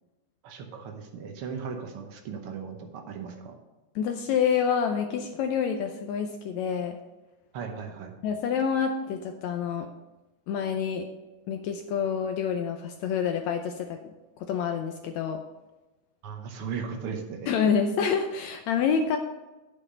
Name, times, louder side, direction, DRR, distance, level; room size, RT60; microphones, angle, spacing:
voice 1, 0.4-3.5 7.5-8.1 16.2-17.5, right 6 dB, 80° right, 4 dB, 1.2 m, -37 dB
voice 2, 3.9-7.0 8.2-9.9 10.5-11.0 11.5-14.0 14.5-15.4 17.5-19.2, left 7 dB, 90° left, 5 dB, 1.6 m, -27 dB
8.6 x 7.7 x 5.2 m, 1.1 s
omnidirectional pair, 3.9 m